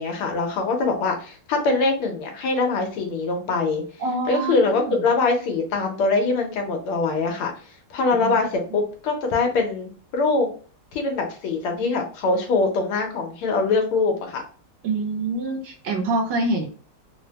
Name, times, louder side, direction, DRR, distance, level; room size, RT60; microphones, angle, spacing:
voice 1, 0.0-3.8 4.3-7.5 7.9-10.5 10.9-14.4, left 3 dB, 90° left, 3 dB, 1.7 m, -23 dB
voice 2, 4.0-5.0 8.1-8.4 14.8-16.7, right 2 dB, 70° right, 2 dB, 1.3 m, -26 dB
4.0 x 2.1 x 2.8 m, 0.39 s
omnidirectional pair, 2.3 m